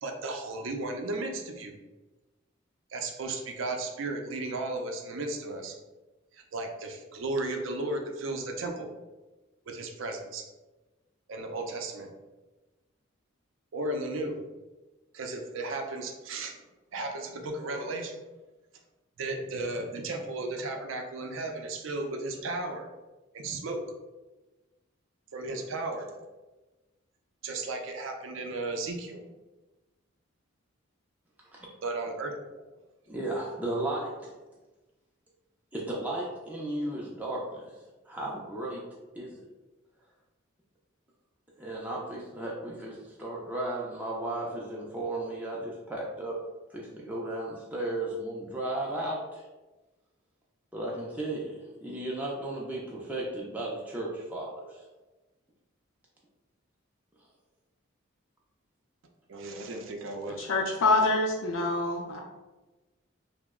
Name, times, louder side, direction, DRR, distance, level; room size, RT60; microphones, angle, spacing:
voice 1, 0.0-1.8 2.9-5.8 6.3-8.9 9.7-10.4 11.3-12.1 13.7-14.4 15.1-16.6 16.9-18.2 19.2-22.9 23.3-23.8 25.3-26.1 27.4-29.2 31.8-32.5 59.3-60.5, right 2 dB, 70° right, 4 dB, 0.5 m, -35 dB
voice 2, 33.1-34.1 35.7-37.8 38.1-38.8 39.1-39.4 41.6-46.3 46.7-49.5 50.7-54.8, right 1 dB, 5° right, -4 dB, 0.3 m, -35 dB
voice 3, 60.4-62.2, left 2 dB, 70° left, 0 dB, 0.4 m, -26 dB
2.9 x 2.0 x 3.5 m, 1.1 s
head